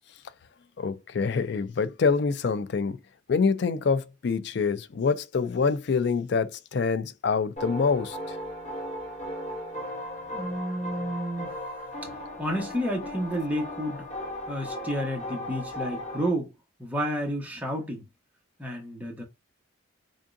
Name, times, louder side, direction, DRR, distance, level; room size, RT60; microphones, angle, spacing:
voice 1, 0.8-3.0 3.3-8.4, left 5 dB, 55° left, 0.3 m, -26 dB
sound 1, 7.6-16.3, left 1 dB, 35° left, 1.0 m, -36 dB
voice 2, 10.3-11.5 12.4-14.0 14.5-16.5 16.8-18.0 18.6-19.2, equal, 10° right, 1.1 m, -30 dB
3.6 x 3.6 x 2.6 m
head